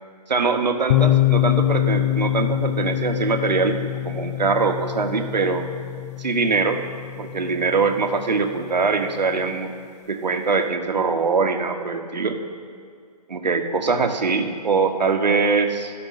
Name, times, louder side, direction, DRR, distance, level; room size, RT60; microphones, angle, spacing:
voice 1, 0.3-3.8 4.0-5.7 6.2-6.8 7.2-9.7 10.1-12.4 13.3-15.9, right 4 dB, 85° right, 5 dB, 1.1 m, -22 dB
sound 1, 0.9-8.6, left 14 dB, 45° left, 0.6 m, -24 dB
13.0 x 5.2 x 6.3 m, 2.2 s
hypercardioid pair, 145°, 21 cm